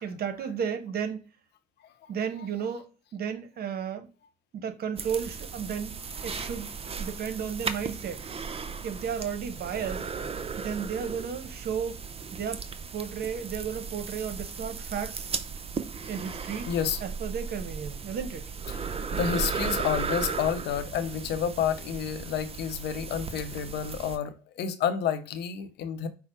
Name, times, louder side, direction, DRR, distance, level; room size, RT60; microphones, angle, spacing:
voice 1, 0.0-1.2 2.1-4.1 4.5-6.0 6.2-6.7 7.0-8.2 8.8-10.0 10.6-12.0 12.3-12.6 12.9-15.3 16.1-16.7 17.0-18.4, right 7 dB, 60° right, 1.0 m, -33 dB
sound 1, 5.0-24.2, right 5 dB, 35° right, 0.7 m, -36 dB
voice 2, 16.7-17.0 18.7-18.8 19.1-26.1, left 8 dB, 70° left, 0.8 m, -30 dB
5.6 x 2.2 x 4.4 m
supercardioid pair, 65°, 18 cm